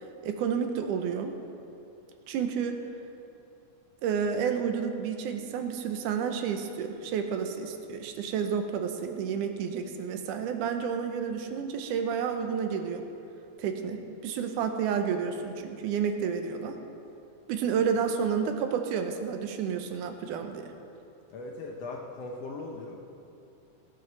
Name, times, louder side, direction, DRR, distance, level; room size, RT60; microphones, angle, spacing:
voice 1, 0.2-1.4 2.3-2.8 4.0-13.0 13.6-16.8 17.5-20.7, right 7 dB, 80° right, 6 dB, 2.3 m, -30 dB
voice 2, 21.3-23.0, left 3 dB, 70° left, 0 dB, 1.6 m, -39 dB
16.5 x 7.8 x 6.1 m, 2.7 s
omnidirectional pair, 3.7 m